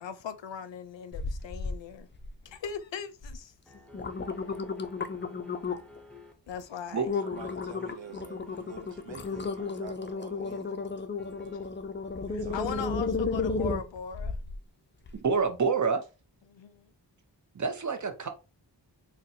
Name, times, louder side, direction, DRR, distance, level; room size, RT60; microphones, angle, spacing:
voice 1, 0.0-2.1 2.4-3.5 6.5-7.1 12.3-14.3 16.5-16.9, left 7 dB, 85° left, 0.5 m, -39 dB
sound 1, 1.1-1.8 2.1-2.7 3.2-3.4 3.7-6.0 6.5-6.6 7.1-14.6 15.1-15.2, left 4 dB, 25° left, 0.4 m, -33 dB
sound 2, 3.7-6.3 7.1-9.8 11.2-11.7, left 2 dB, 5° left, 0.7 m, -52 dB
voice 2, 7.2-10.7 12.3-12.9, right 6 dB, 90° right, 0.7 m, -47 dB
voice 3, 15.2-16.0 17.5-18.3, right 5 dB, 45° right, 0.6 m, -27 dB
4.0 x 2.2 x 2.7 m
wide cardioid pair, 60°, 43 cm